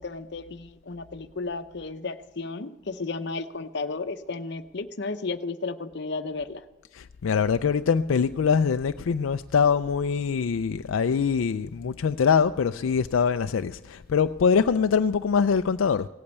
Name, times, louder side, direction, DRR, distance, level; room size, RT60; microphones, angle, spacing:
voice 1, 0.0-6.6, left 3 dB, 55° left, 0.8 m, -33 dB
voice 2, 6.9-16.1, left 6 dB, 80° left, 0.4 m, -23 dB
17.0 x 8.6 x 8.2 m
head